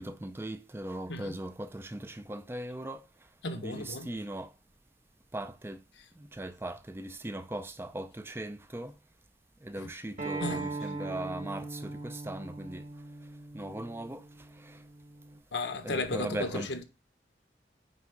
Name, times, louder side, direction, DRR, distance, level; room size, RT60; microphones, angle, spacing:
voice 1, 0.0-3.0 3.5-4.5 5.3-5.8 6.3-8.9 9.6-12.8 13.5-14.2 15.8-16.7, right 1 dB, 15° right, 0.4 m, -39 dB
voice 2, 3.4-4.1 10.4-10.8 15.5-16.8, left 2 dB, 85° left, 1.1 m, -34 dB
Acoustic guitar, 10.2-15.4, right 3 dB, 45° right, 1.4 m, -40 dB
9.4 x 3.6 x 5.2 m
head